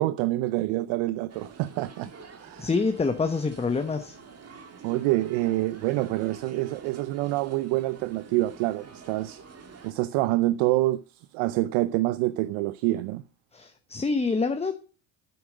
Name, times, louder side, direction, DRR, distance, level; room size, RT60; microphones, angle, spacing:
voice 1, 0.0-2.1 2.4-2.7 4.8-9.4 9.8-13.2, right 17 dB, 75° right, 0.7 m, -26 dB
sound 1, 1.3-9.9, right 5 dB, 30° right, 1.8 m, -47 dB
voice 2, 2.6-4.2 13.5-14.8, left 4 dB, 15° left, 0.9 m, -26 dB
8.6 x 7.9 x 6.4 m
supercardioid pair, 95°, 49 cm